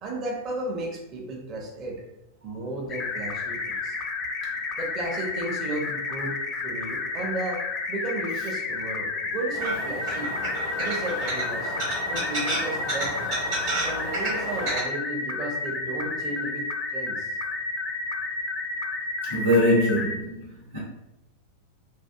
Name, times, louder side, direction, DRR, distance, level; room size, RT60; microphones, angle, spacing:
voice 1, 0.0-2.0 2.4-4.0 4.8-10.3 10.8-11.7 12.1-13.2 13.6-17.4, right 2 dB, 30° right, 0 dB, 0.6 m, -34 dB
sound 1, 2.9-20.2, left 3 dB, 30° left, 0.3 m, -31 dB
sound 2, 9.5-14.8, right 1 dB, 50° right, 1.1 m, -31 dB
voice 2, 19.2-20.8, left 1 dB, 75° right, -8 dB, 1.0 m, -23 dB
2.6 x 2.4 x 2.3 m, 0.90 s
figure-of-eight pair, 90°, 0 cm